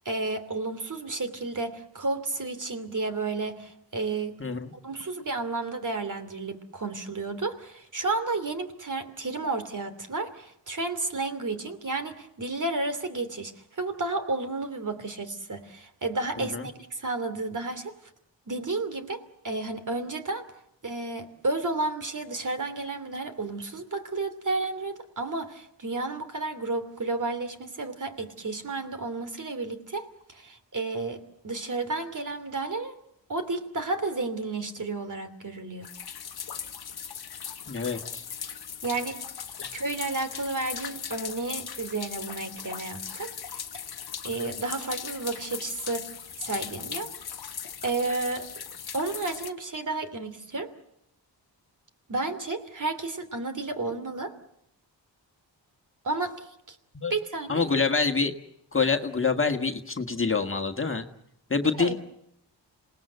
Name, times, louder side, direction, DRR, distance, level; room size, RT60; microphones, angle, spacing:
voice 1, 0.0-4.4 4.8-17.9 18.5-20.5 20.8-33.0 33.3-35.9 38.8-39.2 39.7-43.3 44.2-46.1 46.4-47.1 47.8-48.5 48.9-50.7 52.1-54.3 56.0-56.8 57.1-57.7 61.8-61.9, right 3 dB, 45° right, 10 dB, 2.9 m, -32 dB
voice 2, 4.4-4.7 16.4-16.7 37.7-38.2 56.9-57.1 57.5-58.3 58.7-61.1 61.5-62.0, left 4 dB, 30° left, 5 dB, 1.7 m, -26 dB
sound 1, 35.8-49.5, left 8 dB, 55° left, 1.2 m, -39 dB
27.0 x 19.0 x 8.0 m, 0.77 s
cardioid pair, 65°, 44 cm